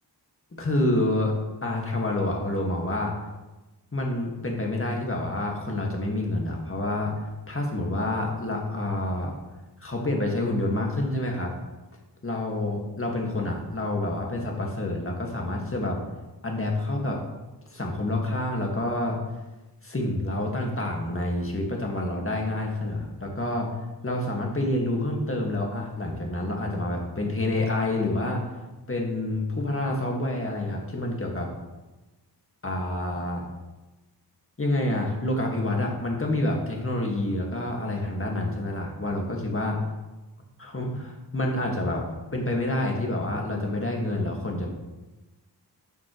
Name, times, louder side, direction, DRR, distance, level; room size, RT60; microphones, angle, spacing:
voice 1, 0.6-1.3 1.6-3.1 3.9-7.1 7.5-9.3 9.8-11.5 12.2-16.0 16.4-17.2 17.7-19.2 19.8-23.7 24.0-28.5 28.9-31.5 32.6-33.4 34.6-39.8 40.6-42.0 42.3-44.7, left 1 dB, 30° left, 0 dB, 1.8 m, -28 dB
12.0 x 5.9 x 3.1 m, 1.1 s
wide cardioid pair, 65°, 41 cm